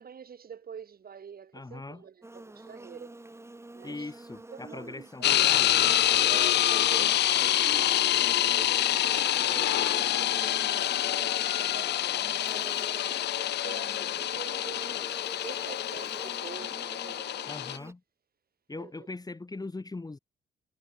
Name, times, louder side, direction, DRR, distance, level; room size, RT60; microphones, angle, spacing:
voice 1, 0.0-3.2 3.7-4.1 4.5-5.8 6.2-7.9 8.5-12.0 12.3-15.1 15.4-17.8 18.7-18.9, right 7 dB, 50° right, 5.8 m, -46 dB
voice 2, 1.5-2.0 3.8-6.0 17.5-18.0 18.7-20.2, left 3 dB, 20° left, 2.6 m, -40 dB
Buzz, 2.2-17.9, right 2 dB, 15° right, 4.4 m, -47 dB
sound 1, 5.2-17.8, left 12 dB, 60° left, 0.5 m, -26 dB
cardioid pair, 90°, 20 cm